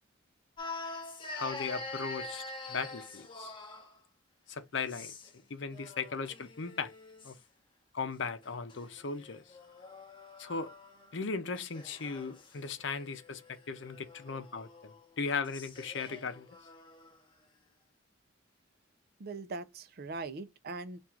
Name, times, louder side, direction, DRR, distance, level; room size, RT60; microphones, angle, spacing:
sound 1, 0.6-4.0 4.8-5.4 5.7-7.4 8.4-11.2 11.6-17.2, left 3 dB, 25° left, 0.8 m, -46 dB
voice 1, 1.4-3.5 4.5-5.1 5.5-6.9 7.2-7.4 7.9-9.4 10.4-10.7 11.1-16.5, left 5 dB, 65° left, 0.7 m, -37 dB
voice 2, 19.2-21.0, right 3 dB, 50° right, 0.5 m, -41 dB
3.7 x 2.5 x 4.4 m
head